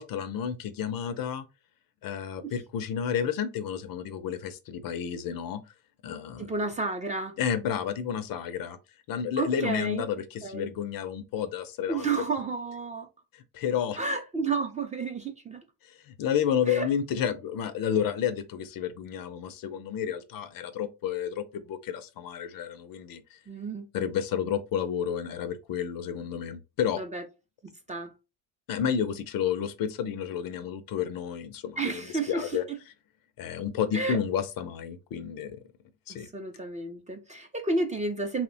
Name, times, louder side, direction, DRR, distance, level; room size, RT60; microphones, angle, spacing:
voice 1, 0.0-1.4 2.0-5.6 6.0-6.5 7.4-8.8 9.1-12.1 13.3-14.0 15.8-23.4 23.9-27.0 28.7-32.6 33.4-35.6 36.1-36.3, left 8 dB, 50° left, 0.5 m, -31 dB
voice 2, 6.4-7.3 9.4-10.0 10.4-10.7 11.9-13.1 14.0-15.6 16.7-16.9 23.5-23.9 26.9-27.2 27.6-28.1 31.8-32.5 33.9-34.2 36.1-38.4, right 3 dB, 15° right, 0.5 m, -31 dB
2.9 x 2.1 x 2.6 m
supercardioid pair, 80°, 45 cm